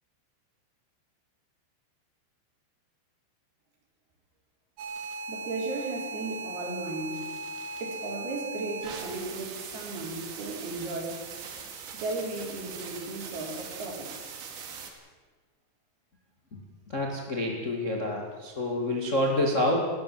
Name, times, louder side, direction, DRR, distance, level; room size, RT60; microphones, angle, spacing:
sound 1, 4.8-14.9, right 3 dB, 70° right, 4.4 m, -39 dB
voice 1, 5.3-7.3 7.8-11.2 11.9-14.4, right 3 dB, 55° right, 0 dB, 5.7 m, -35 dB
voice 2, 16.9-19.9, left 1 dB, 70° left, 0 dB, 0.7 m, -27 dB
28.5 x 12.0 x 7.6 m, 1.4 s
omnidirectional pair, 5.6 m